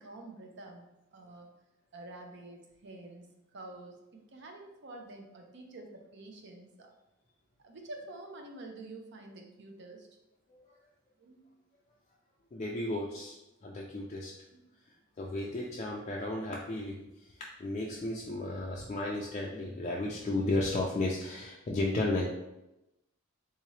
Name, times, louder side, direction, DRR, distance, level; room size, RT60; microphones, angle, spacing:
voice 1, 0.0-1.5 1.9-3.3 3.5-6.9 7.6-10.1 11.2-11.5 14.5-14.7, right 2 dB, 60° right, 3 dB, 0.6 m, -48 dB
voice 2, 12.5-13.3 13.6-14.3 15.2-22.3, left 2 dB, 35° left, -2 dB, 0.4 m, -34 dB
3.6 x 2.8 x 3.1 m, 0.92 s
head